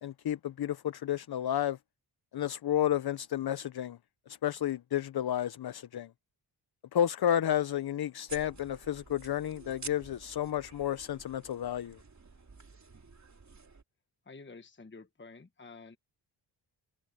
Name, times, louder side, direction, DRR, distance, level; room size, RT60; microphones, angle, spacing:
voice 1, 0.0-1.8 2.3-4.0 4.3-6.1 6.9-12.0, left 10 dB, 55° left, 0.7 m, -31 dB
sound 1, 8.3-13.8, right 4 dB, 35° right, 3.3 m, -50 dB
voice 2, 14.2-16.0, left 3 dB, 25° left, 1.3 m, -50 dB
cardioid pair, 80°, 46 cm